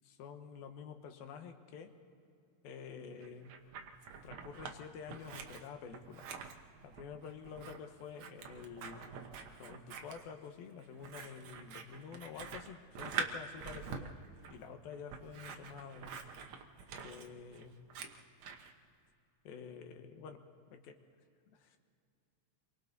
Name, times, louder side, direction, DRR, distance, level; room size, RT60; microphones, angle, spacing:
voice 1, 0.1-1.9 2.6-3.6 4.2-6.3 6.8-9.0 9.6-14.1 14.5-16.2 17.0-17.8 19.4-21.0 21.5-21.8, left 6 dB, 75° left, 6 dB, 3.0 m, -49 dB
Scissors, 3.2-4.8 5.1-18.7, right 6 dB, 65° right, 1.7 m, -45 dB
28.5 x 24.0 x 4.1 m, 2.4 s
omnidirectional pair, 4.4 m